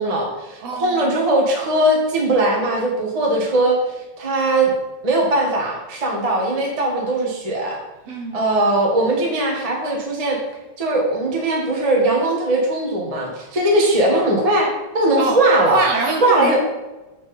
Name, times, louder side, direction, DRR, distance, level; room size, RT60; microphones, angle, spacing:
voice 1, 0.0-3.8 4.2-4.7 5.0-7.8 8.3-10.4 10.8-15.8 16.2-16.6, right 1 dB, 30° right, -1 dB, 0.7 m, -19 dB
voice 2, 0.6-1.2 8.1-8.5 15.2-15.4 15.7-16.6, right 4 dB, 65° right, 2 dB, 1.9 m, -24 dB
7.3 x 6.2 x 4.3 m, 1.1 s
omnidirectional pair, 3.5 m